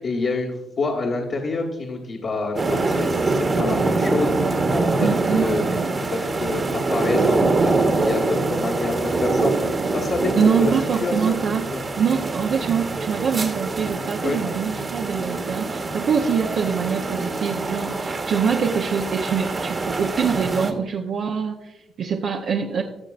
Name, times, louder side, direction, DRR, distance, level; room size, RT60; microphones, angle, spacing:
voice 1, 0.0-5.6 6.1-10.7 11.0-11.4 11.7-11.8 14.2-14.4, left 3 dB, 55° left, -2 dB, 1.6 m, -27 dB
sound 1, 2.5-20.7, right 3 dB, 35° right, 1.3 m, -24 dB
voice 2, 5.0-5.5 10.4-11.7 12.0-22.8, right 6 dB, 65° right, 0 dB, 0.8 m, -24 dB
16.5 x 6.8 x 2.5 m, 0.94 s
cardioid pair, 90°, 0 cm